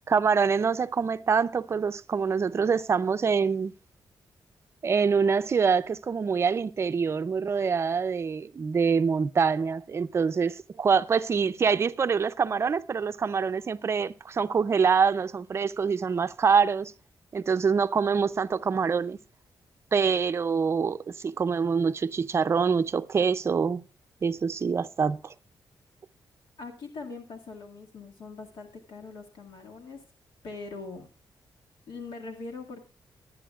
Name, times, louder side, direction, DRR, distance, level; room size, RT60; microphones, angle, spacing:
voice 1, 0.1-3.7 4.8-16.9 17.3-19.2 19.9-23.8 24.2-25.3, right 5 dB, 35° right, 0.5 m, -25 dB
voice 2, 26.6-30.0 30.4-31.1 31.9-32.8, left 4 dB, 75° left, 2.0 m, -41 dB
22.5 x 9.4 x 2.4 m
wide cardioid pair, 150°, 8 cm